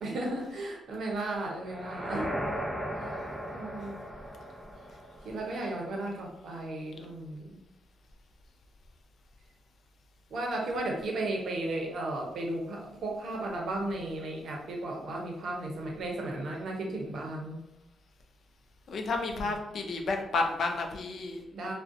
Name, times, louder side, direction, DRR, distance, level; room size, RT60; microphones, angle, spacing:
voice 1, 0.0-2.3 3.0-3.2 3.5-3.9 5.2-7.6 10.3-17.6 19.3-19.5 21.5-21.7, right 2 dB, 70° right, 1 dB, 0.6 m, -35 dB
sound 1, 1.6-5.7, equal, 5° left, 0.5 m, -37 dB
voice 2, 18.9-21.4, left 3 dB, 65° left, 4 dB, 0.4 m, -31 dB
2.4 x 2.1 x 2.5 m, 0.86 s
supercardioid pair, 60°, 0 cm